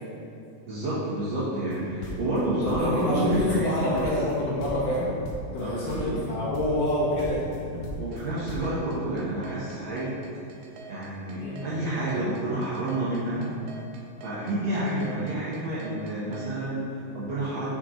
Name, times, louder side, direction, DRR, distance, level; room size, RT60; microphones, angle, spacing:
voice 1, 0.7-4.1 5.6-6.2 8.0-10.1 10.9-13.5 14.2-17.7, right 1 dB, 65° right, -9 dB, 1.7 m, -29 dB
sound 1, 1.7-3.1 3.3-4.3 4.6-5.0 5.2-5.6 5.9-6.3 6.5-6.9 7.2-8.7, left 1 dB, 90° left, 2.6 m, -37 dB
voice 2, 2.6-5.1 5.5-7.5 7.7-7.8 11.4-11.6 15.0-15.2, left 1 dB, 70° left, -7 dB, 2.5 m, -27 dB
sound 2, 8.1-16.5, right 4 dB, 85° right, 2.3 m, -46 dB
6.1 x 5.1 x 4.2 m, 2.5 s
omnidirectional pair, 4.0 m